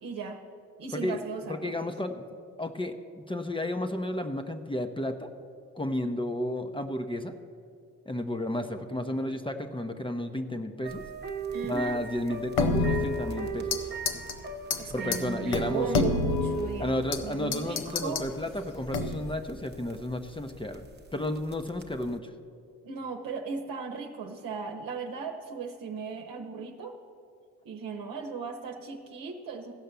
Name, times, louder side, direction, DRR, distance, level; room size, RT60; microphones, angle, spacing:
voice 1, 0.0-0.4 0.8-1.9 11.5-12.0 14.8-17.0 17.2-18.3 22.8-26.9 27.7-29.7, right 5 dB, 65° right, 2 dB, 0.9 m, -37 dB
voice 2, 1.5-2.3 2.6-5.3 5.7-7.3 8.1-11.0 11.6-13.8 14.9-16.2 16.8-20.8 21.1-22.3, left 1 dB, 15° left, 7 dB, 0.7 m, -32 dB
sound 1, 10.8-22.2, right 6 dB, 30° right, 0.9 m, -40 dB
sound 2, 12.6-13.8 14.1-14.3 14.7-14.8 15.1-15.2 15.5-17.2 17.5-18.3 18.9-19.3, left 3 dB, 85° left, 0.8 m, -28 dB
15.0 x 5.6 x 6.8 m, 2.4 s
supercardioid pair, 65°, 36 cm